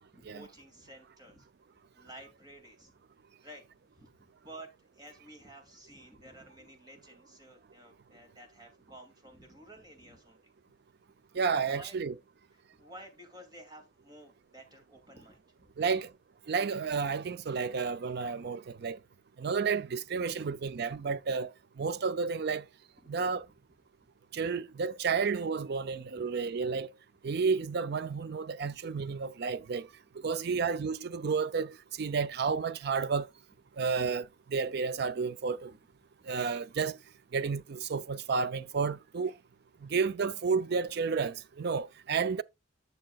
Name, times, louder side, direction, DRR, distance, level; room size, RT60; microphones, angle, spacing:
voice 1, 0.1-1.5 1.9-2.9 3.4-3.6 3.9-10.5 11.6-12.0 12.8-15.9 20.3-20.5 23.0-23.2 23.4-23.5 28.7-28.8 29.5-29.7 30.2-30.7 36.2-36.5, right 1 dB, 20° right, 2.5 m, -53 dB
voice 2, 11.3-12.2 15.8-16.1 16.5-19.0 19.4-22.7 23.1-23.5 24.3-26.9 27.2-29.9 30.2-33.3 33.8-35.7 36.2-37.0 37.3-39.3 39.8-42.4, right 5 dB, 55° right, 0.4 m, -31 dB
11.5 x 6.7 x 2.4 m
head